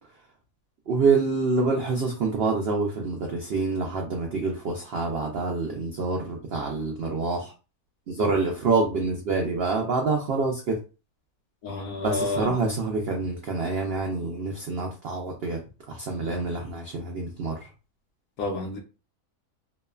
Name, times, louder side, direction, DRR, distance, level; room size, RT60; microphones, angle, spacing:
voice 1, 0.9-7.5 8.1-10.8 12.0-15.6 15.9-17.7, right 3 dB, 75° right, 0.5 m, -26 dB
voice 2, 11.6-12.5 18.4-18.8, left 2 dB, 70° left, 1.1 m, -30 dB
3.0 x 2.0 x 2.3 m
omnidirectional pair, 1.6 m